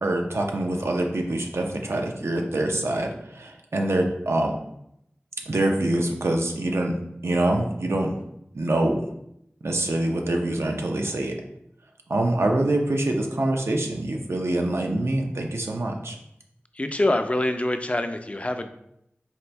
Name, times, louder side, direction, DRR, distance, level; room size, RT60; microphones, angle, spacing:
voice 1, 0.0-4.6 5.5-7.0 7.2-8.1 8.5-9.0 9.6-11.3 12.1-16.2, right 1 dB, 85° right, 2 dB, 0.5 m, -25 dB
voice 2, 16.7-18.7, left 1 dB, 30° left, 7 dB, 0.3 m, -25 dB
4.3 x 2.5 x 3.3 m, 0.78 s
wide cardioid pair, 50°, 4 cm